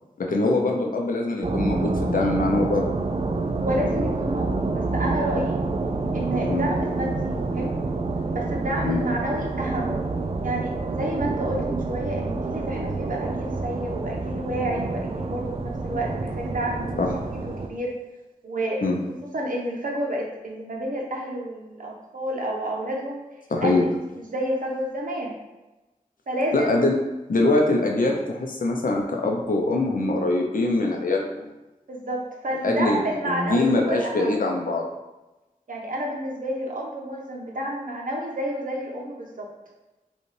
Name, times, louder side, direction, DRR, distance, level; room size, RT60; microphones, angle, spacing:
voice 1, 0.2-2.9 6.5-6.7 8.8-9.0 17.0-17.1 18.8-19.0 23.5-23.8 26.5-26.9 27.3-31.5 32.6-34.9, left 2 dB, 75° left, 1 dB, 0.7 m, -23 dB
sound 1, 1.4-17.7, right 3 dB, 45° right, 0.4 m, -28 dB
voice 2, 3.6-5.6 6.1-7.7 8.3-10.0 10.4-17.9 18.4-18.9 19.3-23.2 23.6-23.9 24.2-25.3 26.3-26.7 31.9-34.4 35.7-39.5, right 1 dB, 70° right, -2 dB, 0.9 m, -30 dB
5.1 x 2.4 x 3.3 m, 1.0 s
wide cardioid pair, 70°, 14 cm